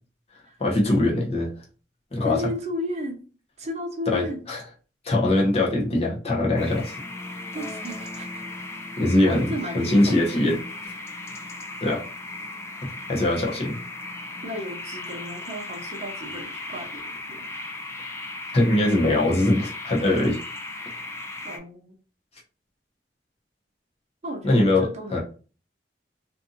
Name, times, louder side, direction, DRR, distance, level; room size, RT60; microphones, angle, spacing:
voice 1, 0.6-1.5 2.1-2.5 4.1-4.6 5.0-6.9 9.0-10.6 11.8-12.0 12.8-13.8 18.5-20.4 24.4-25.2, left 1 dB, 35° left, -2 dB, 0.7 m, -22 dB
voice 2, 2.2-3.2 3.6-4.4 7.5-8.4 9.2-10.4 14.4-17.5 20.8-21.0 21.4-21.9 24.2-25.2, equal, 40° right, 2 dB, 0.6 m, -34 dB
sound 1, 6.6-21.6, left 2 dB, 15° left, 0.4 m, -37 dB
2.6 x 2.5 x 2.6 m, 0.36 s
head